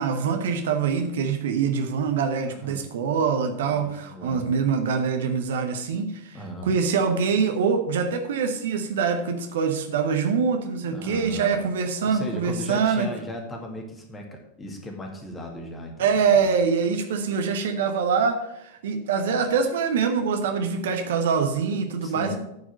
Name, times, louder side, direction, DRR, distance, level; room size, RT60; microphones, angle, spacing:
voice 1, 0.0-13.1 16.0-22.4, right 5 dB, 60° right, 6 dB, 1.0 m, -24 dB
voice 2, 2.5-2.9 3.7-4.5 6.3-6.8 10.9-11.6 12.0-16.5 22.0-22.4, equal, 15° left, 2 dB, 2.2 m, -37 dB
9.5 x 4.9 x 7.5 m, 0.82 s
figure-of-eight pair, 90°, 0 cm